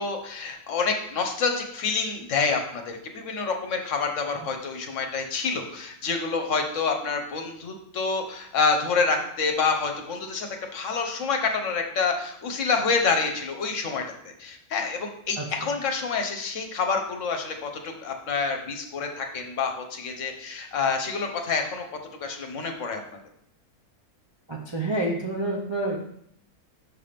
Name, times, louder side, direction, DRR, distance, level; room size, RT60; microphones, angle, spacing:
voice 1, 0.0-14.0 14.4-21.9 22.2-23.0, left 4 dB, 60° left, 4 dB, 1.2 m, -27 dB
voice 2, 24.5-26.0, right 2 dB, 30° right, -2 dB, 0.5 m, -28 dB
6.5 x 3.4 x 5.8 m, 0.71 s
omnidirectional pair, 1.6 m